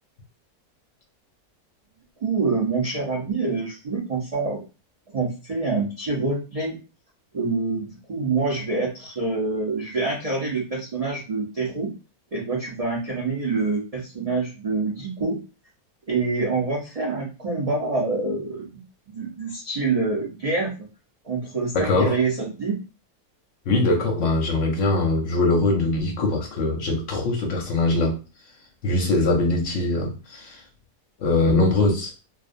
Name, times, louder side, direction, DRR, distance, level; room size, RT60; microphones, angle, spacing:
voice 1, 2.2-4.6 5.1-6.8 7.3-11.9 12.3-15.4 16.1-18.8 19.1-20.7 21.2-22.8, right 3 dB, 65° right, 0.3 m, -26 dB
voice 2, 21.7-22.1 23.7-28.2 28.8-30.6 31.2-32.1, left 2 dB, 65° left, 0.8 m, -22 dB
2.5 x 2.1 x 2.5 m
omnidirectional pair, 1.6 m